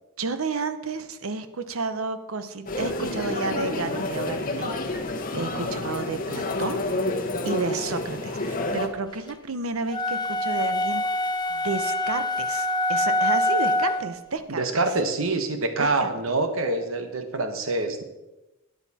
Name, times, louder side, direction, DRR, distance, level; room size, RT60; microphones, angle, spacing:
voice 1, 0.2-4.8 5.3-6.8 7.4-14.8 15.8-16.1, right 3 dB, 90° right, 11 dB, 0.9 m, -31 dB
sound 1, 2.7-8.9, left 2 dB, 40° left, 1.2 m, -29 dB
voice 2, 5.3-5.8 14.6-18.0, right 2 dB, 70° right, 7 dB, 1.2 m, -26 dB
sound 2, 9.9-14.2, left 1 dB, 20° left, 0.8 m, -25 dB
12.5 x 9.6 x 4.2 m, 1.0 s
head